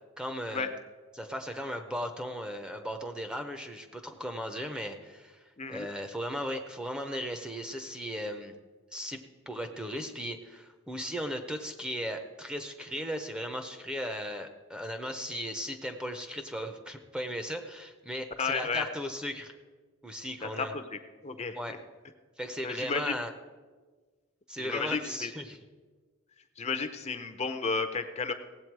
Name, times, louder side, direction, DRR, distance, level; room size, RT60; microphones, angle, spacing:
voice 1, 0.2-0.7 1.2-5.4 5.7-8.5 8.9-9.2 9.5-19.5 20.0-20.7 21.5-21.7 22.4-23.3 24.5-25.6, equal, 5° right, 6 dB, 0.7 m, -37 dB
voice 2, 5.6-5.9 18.4-18.9 20.4-21.8 22.6-23.2 24.6-25.3 26.6-28.3, left 4 dB, 30° left, 8 dB, 0.6 m, -33 dB
17.5 x 8.2 x 4.7 m, 1.4 s
head